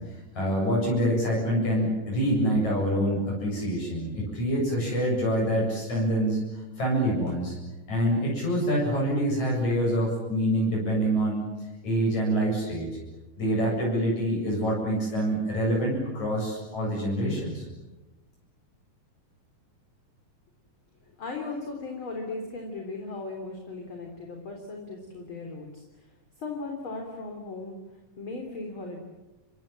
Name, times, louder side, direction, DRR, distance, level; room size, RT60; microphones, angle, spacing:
voice 1, 0.4-7.6 7.9-11.4 11.8-12.9 13.4-17.7, equal, 55° left, -3 dB, 9.4 m, -26 dB
voice 2, 21.0-26.1 26.4-27.8 28.2-29.0, left 3 dB, 35° left, 2 dB, 4.0 m, -37 dB
30.0 x 25.0 x 7.6 m, 1.1 s
omnidirectional pair, 3.9 m